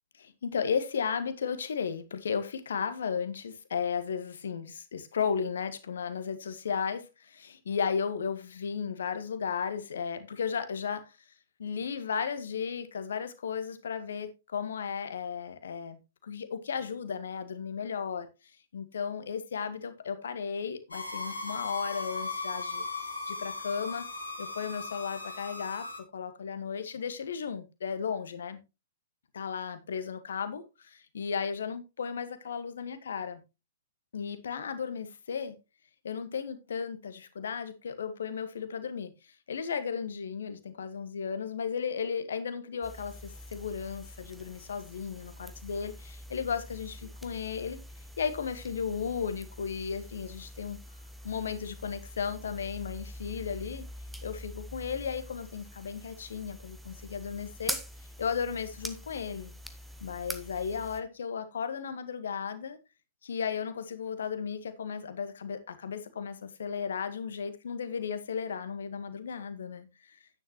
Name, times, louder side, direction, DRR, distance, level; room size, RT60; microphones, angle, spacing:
voice 1, 0.2-11.2 11.6-18.3 18.7-22.8 23.2-24.1 24.4-25.9 26.1-28.6 29.3-33.4 34.1-35.5 36.0-47.8 48.2-50.8 51.2-53.9 54.2-57.8 58.2-59.5 60.0-62.8 63.2-70.2, left 6 dB, 60° left, 1.5 m, -35 dB
sound 1, 20.9-26.0, left 3 dB, 80° left, 2.6 m, -37 dB
sound 2, 42.8-61.0, equal, 5° right, 1.1 m, -44 dB
10.5 x 9.4 x 3.0 m
figure-of-eight pair, 110°, 0 cm